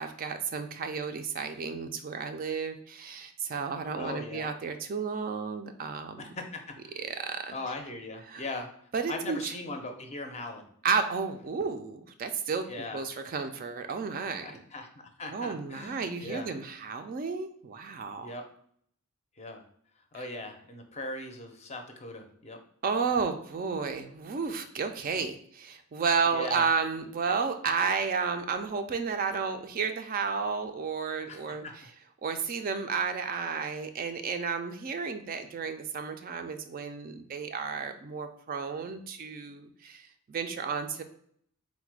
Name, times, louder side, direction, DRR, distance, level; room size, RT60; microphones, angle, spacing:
voice 1, 0.0-6.2 7.0-7.6 8.3-8.4 8.9-9.5 10.8-12.7 12.9-14.5 15.3-18.3 20.1-20.2 22.8-31.7 32.2-41.0, right 5 dB, 40° right, 7 dB, 0.3 m, -32 dB
voice 2, 3.9-4.5 6.2-7.0 7.5-8.7 9.1-10.7 12.7-13.0 14.4-16.5 18.2-18.5 19.4-19.6 20.1-22.6 26.3-26.7 31.3-31.7, left 2 dB, 30° left, 5 dB, 0.5 m, -39 dB
4.0 x 2.1 x 4.5 m, 0.64 s
head